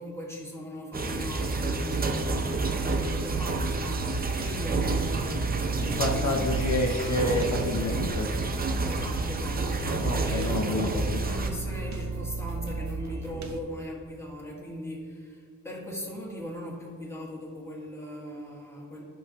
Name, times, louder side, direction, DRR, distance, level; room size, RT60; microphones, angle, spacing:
voice 1, 0.0-6.5 8.8-19.0, equal, 10° left, -3 dB, 1.7 m, -39 dB
sound 1, 0.9-11.5, right 3 dB, 30° right, 0.7 m, -29 dB
sound 2, 2.3-13.6, right 4 dB, 60° right, 0.8 m, -36 dB
voice 2, 5.8-8.3 10.0-11.2, left 2 dB, 60° left, 1 dB, 0.9 m, -29 dB
12.0 x 5.7 x 3.0 m, 2.1 s
wide cardioid pair, 105°, 32 cm